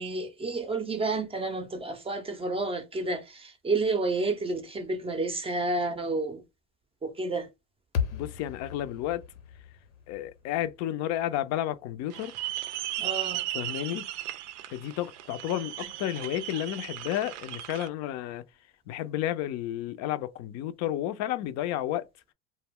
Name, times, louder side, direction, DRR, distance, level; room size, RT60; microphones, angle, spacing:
voice 1, 0.0-6.4 7.0-7.5 13.0-13.4, right 3 dB, 15° right, 0.5 m, -30 dB
sound 1, 7.9-12.2, left 7 dB, 85° left, 0.8 m, -37 dB
voice 2, 8.1-9.2 10.1-12.3 13.5-14.1 14.7-18.4 18.9-22.1, left 12 dB, 50° left, 0.4 m, -31 dB
sound 2, 12.1-17.9, right 14 dB, 80° right, 0.5 m, -36 dB
2.1 x 2.0 x 3.5 m
hypercardioid pair, 90°, 35 cm